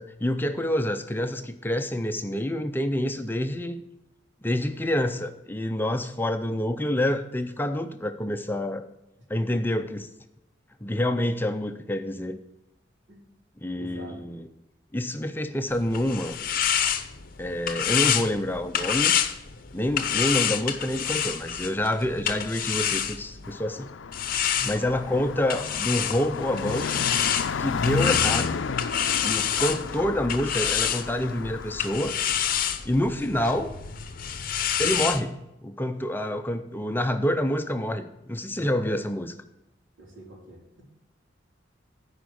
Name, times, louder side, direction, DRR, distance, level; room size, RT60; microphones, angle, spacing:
voice 1, 0.0-3.8 4.4-8.9 9.3-10.1 10.8-12.4 13.6-14.5 14.9-16.4 17.4-19.2 19.7-23.9 24.7-27.0 27.6-28.7 29.2-32.2 32.8-33.7 34.8-39.4, left 1 dB, 10° left, 8 dB, 0.5 m, -27 dB
voice 2, 13.7-14.2 24.5-24.8 40.0-40.6, right 1 dB, 80° right, -2 dB, 3.7 m, -43 dB
sound 1, 15.7-23.5 24.1-35.2, left 9 dB, 50° left, 0.7 m, -28 dB
Car passing by, 23.4-32.0, left 5 dB, 85° left, 0.5 m, -33 dB
13.0 x 5.2 x 6.3 m, 0.89 s
head